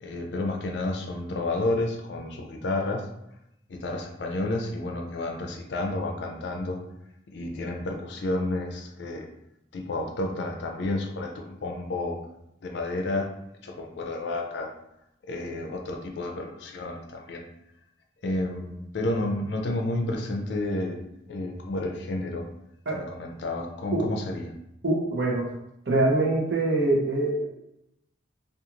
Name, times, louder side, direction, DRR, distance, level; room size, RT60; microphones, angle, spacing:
voice 1, 0.0-3.1 3.7-6.8 7.3-9.3 9.7-12.2 12.6-13.3 13.6-14.7 15.3-17.4 18.2-21.0 21.3-22.5 22.9-24.5, left 2 dB, 60° left, 3 dB, 0.4 m, -30 dB
voice 2, 24.8-25.5 25.9-27.5, right 2 dB, 60° right, -2 dB, 0.6 m, -24 dB
2.4 x 2.3 x 2.9 m, 0.82 s
head